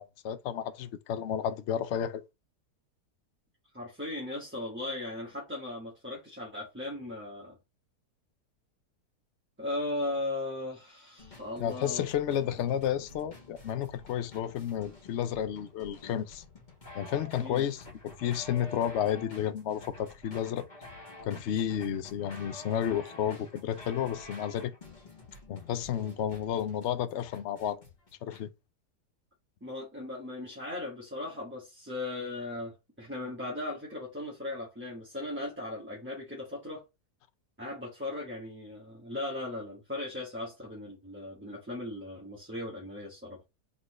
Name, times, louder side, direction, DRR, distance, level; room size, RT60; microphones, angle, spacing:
voice 1, 0.0-2.2 11.6-16.4 17.0-20.6 21.2-24.7 25.5-27.8 28.2-28.5, left 9 dB, 70° left, 0.7 m, -32 dB
voice 2, 3.7-7.6 9.6-12.0 17.4-17.6 29.6-36.8 37.6-43.4, left 2 dB, 10° right, 1.0 m, -37 dB
sound 1, 11.2-28.4, left 2 dB, 30° left, 1.6 m, -49 dB
4.0 x 3.8 x 3.1 m
omnidirectional pair, 1.7 m